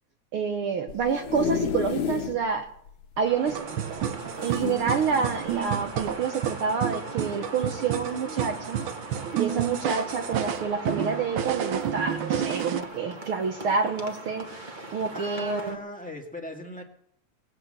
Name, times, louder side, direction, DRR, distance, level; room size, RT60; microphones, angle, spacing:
voice 1, 0.3-2.6 3.2-3.7 4.4-8.8 9.3-14.5 14.9-15.8, right 5 dB, 65° right, 6 dB, 1.4 m, -28 dB
sound 1, 0.9-2.4 2.9-3.0 3.2-3.3 4.4-5.3 6.0-6.2, left 7 dB, 75° left, 2.4 m, -31 dB
sound 2, 3.2-15.8, right 1 dB, 30° right, 0.9 m, -41 dB
sound 3, 3.5-12.8, right 9 dB, 80° right, 1.1 m, -31 dB
voice 2, 15.1-16.8, left 1 dB, 5° left, 1 dB, 1.1 m, -38 dB
19.5 x 7.7 x 7.9 m, 0.70 s
omnidirectional pair, 3.5 m